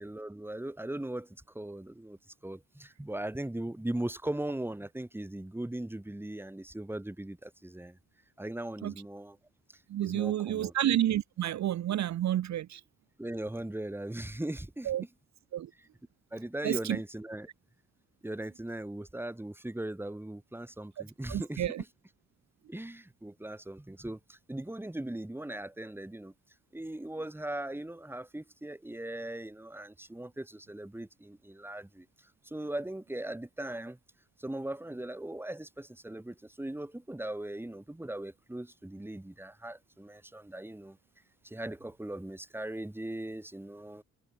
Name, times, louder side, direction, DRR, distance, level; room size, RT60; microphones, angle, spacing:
voice 1, 0.0-8.0 8.4-9.4 10.0-10.7 13.2-14.9 16.3-17.5 18.2-21.7 22.7-26.3 26.7-32.1 32.4-34.0 34.4-41.0 41.4-44.0, right 1 dB, 5° right, 1.6 m, -39 dB
voice 2, 9.9-12.8 14.8-15.0 15.5-15.7 16.6-17.0 21.3-21.8, right 12 dB, 65° right, 0.5 m, -30 dB
wide cardioid pair, 105°, 29 cm